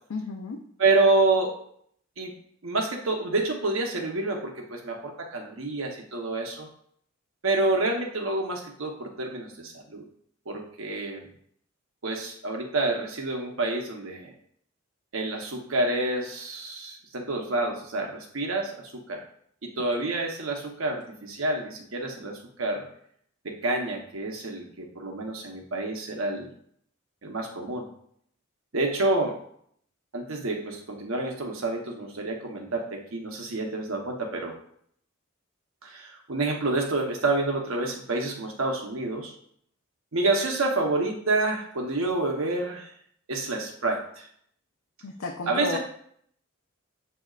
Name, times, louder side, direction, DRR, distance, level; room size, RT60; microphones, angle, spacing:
voice 1, 0.1-0.6 45.0-45.8, left 4 dB, 85° left, 0 dB, 0.6 m, -32 dB
voice 2, 0.8-1.6 2.2-2.3 2.6-6.7 7.4-10.0 10.5-11.3 12.0-14.3 15.1-19.2 19.6-22.9 23.4-26.5 27.2-27.9 28.7-29.4 30.1-34.5 35.8-39.3 40.1-42.9 43.3-44.3 45.5-45.8, right 2 dB, 70° right, 1 dB, 1.0 m, -28 dB
7.6 x 2.8 x 2.4 m, 0.65 s
head